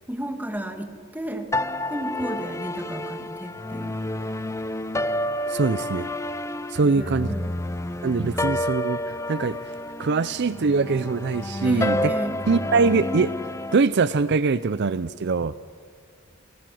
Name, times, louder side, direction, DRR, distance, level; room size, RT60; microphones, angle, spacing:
voice 1, 0.1-1.5 1.9-4.0 6.8-7.5 11.6-12.4, right 1 dB, 10° right, 5 dB, 2.0 m, -33 dB
sound 1, 1.5-13.7, left 1 dB, 15° left, 0.6 m, -29 dB
voice 2, 5.5-6.1 6.7-7.3 8.0-9.6 10.0-12.1 12.5-13.3 13.7-15.6, right 4 dB, 55° right, 15 dB, 0.5 m, -23 dB
28.0 x 18.5 x 7.7 m, 2.1 s
head